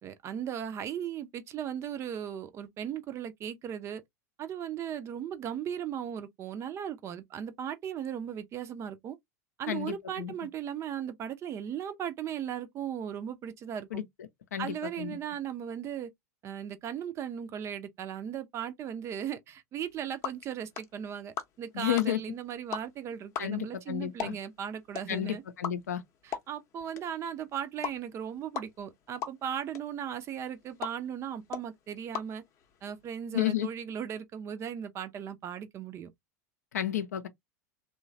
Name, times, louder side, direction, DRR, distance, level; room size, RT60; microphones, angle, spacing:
voice 1, 0.0-4.0 4.4-9.2 9.6-14.0 14.6-16.1 16.4-25.4 26.2-32.4 32.8-36.1, right 9 dB, 30° right, 0.5 m, -37 dB
voice 2, 9.7-10.3 13.9-14.0 14.5-15.2 21.8-22.2 23.4-24.3 25.1-26.0 33.3-33.7 36.7-37.3, left 12 dB, 70° left, 0.5 m, -31 dB
sound 1, 19.8-33.1, left 8 dB, 35° left, 0.7 m, -43 dB
3.0 x 2.2 x 2.6 m
figure-of-eight pair, 80°, 9 cm